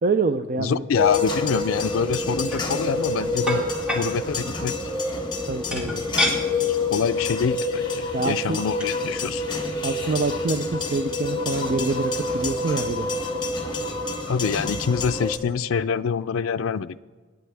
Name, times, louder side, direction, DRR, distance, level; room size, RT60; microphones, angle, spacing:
voice 1, 0.0-0.8 5.4-5.9 8.1-8.6 9.8-13.1, right 3 dB, 45° right, 9 dB, 0.4 m, -26 dB
voice 2, 0.6-3.7 3.9-4.7 5.7-6.1 6.9-9.4 14.3-17.0, left 6 dB, 85° left, 12 dB, 0.4 m, -26 dB
sound 1, 0.9-15.4, left 3 dB, 25° left, 1.2 m, -27 dB
sound 2, 2.5-2.6 3.5-4.0 5.7-6.4 6.9-7.0 7.3-7.5 8.5-8.6 8.8-9.0, left 1 dB, 5° right, 2.6 m, -26 dB
27.0 x 9.5 x 3.4 m, 1.4 s
head